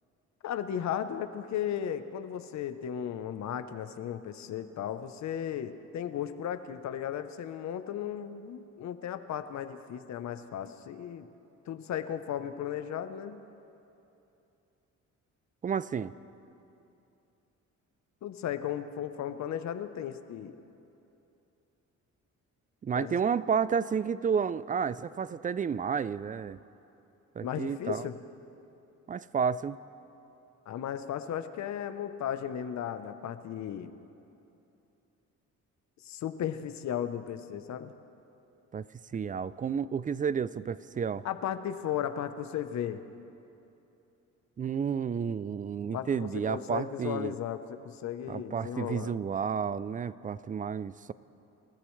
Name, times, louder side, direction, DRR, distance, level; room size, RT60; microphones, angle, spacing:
voice 1, 0.4-11.3 11.7-13.4 18.2-20.6 22.9-23.2 27.4-28.2 30.7-33.9 36.0-37.9 41.2-43.0 45.9-49.1, left 9 dB, 65° left, 10 dB, 0.9 m, -35 dB
voice 2, 15.6-16.1 22.8-26.6 27.4-28.1 29.1-29.8 38.7-38.9 39.1-41.2 44.6-47.3 48.3-51.1, right 6 dB, 30° right, 17 dB, 0.4 m, -31 dB
27.5 x 13.5 x 3.2 m, 2.8 s
cardioid pair, 90°, 30 cm